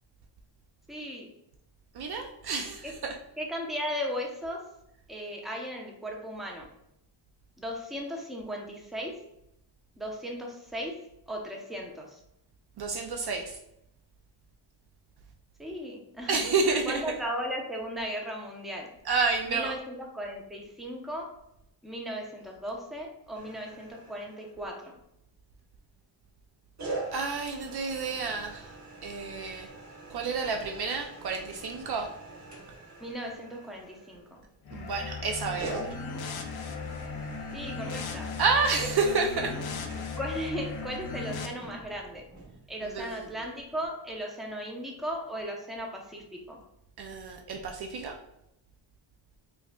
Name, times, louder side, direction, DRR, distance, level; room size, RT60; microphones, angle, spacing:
voice 1, 0.9-1.3 2.8-2.9 3.4-4.6 5.1-6.7 7.6-9.2 10.0-11.0 11.3-12.2 15.6-16.4 16.9-18.9 19.5-21.3 21.8-24.9 33.0-34.4 37.5-38.3 40.2-42.2 42.7-46.6, equal, ahead, -1 dB, 0.7 m, -36 dB
voice 2, 1.9-3.1 12.8-13.6 16.3-17.0 19.1-19.8 27.1-28.7 29.0-29.7 30.1-32.1 34.7-35.8 38.4-39.5 42.8-43.3 47.0-48.2, right 4 dB, 50° right, 3 dB, 0.5 m, -29 dB
sound 1, 23.3-24.9 26.8-34.6 35.6-42.6, right 2 dB, 35° right, 1.0 m, -44 dB
sound 2, 34.6-41.5, left 4 dB, 50° left, 0.6 m, -37 dB
4.5 x 2.5 x 2.2 m, 0.80 s
cardioid pair, 75°, 49 cm